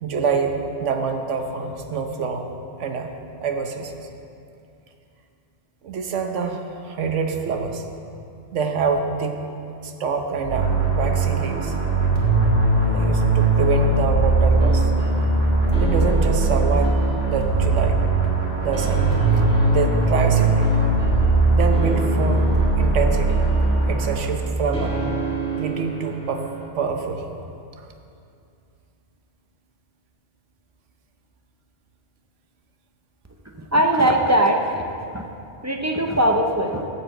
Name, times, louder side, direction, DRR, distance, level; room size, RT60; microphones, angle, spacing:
voice 1, 0.0-2.4 2.8-3.1 3.4-3.9 5.8-7.8 8.5-9.4 9.8-11.7 12.8-14.9 15.7-18.0 18.6-19.4 19.7-20.7 21.5-22.5 22.8-23.5 23.9-25.0 25.6-26.4 26.7-27.2, right 5 dB, 90° right, 5 dB, 1.2 m, -26 dB
sound 1, 10.4-24.6, right 2 dB, 65° right, 2.3 m, -20 dB
sound 2, 14.5-26.7, right 4 dB, 5° left, 1.2 m, -32 dB
voice 2, 33.6-34.6 35.1-35.3 35.6-36.9, right 1 dB, 25° right, 2 dB, 0.4 m, -20 dB
13.0 x 4.5 x 7.7 m, 2.6 s
omnidirectional pair, 1.2 m